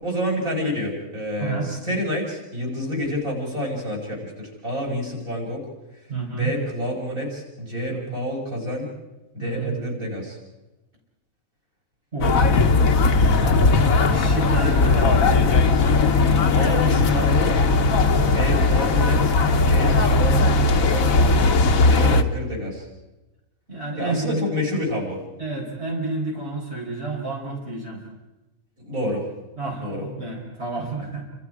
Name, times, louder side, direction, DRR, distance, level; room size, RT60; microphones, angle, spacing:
voice 1, 0.0-5.6 6.3-8.9 9.3-10.4 16.5-17.5 18.2-21.1 21.8-22.9 24.0-25.2 28.8-29.2 29.8-30.1, left 1 dB, 90° right, -2 dB, 6.1 m, -28 dB
voice 2, 1.4-1.7 6.1-6.5 7.9-8.0 9.4-9.7 12.1-15.5 17.9-18.4 21.7-22.1 23.7-24.5 25.4-28.0 29.6-31.2, right 3 dB, 50° right, -2 dB, 4.8 m, -30 dB
sound 1, 12.2-22.2, left 3 dB, 85° left, 1.6 m, -18 dB
29.0 x 26.0 x 4.9 m, 1.0 s
omnidirectional pair, 1.4 m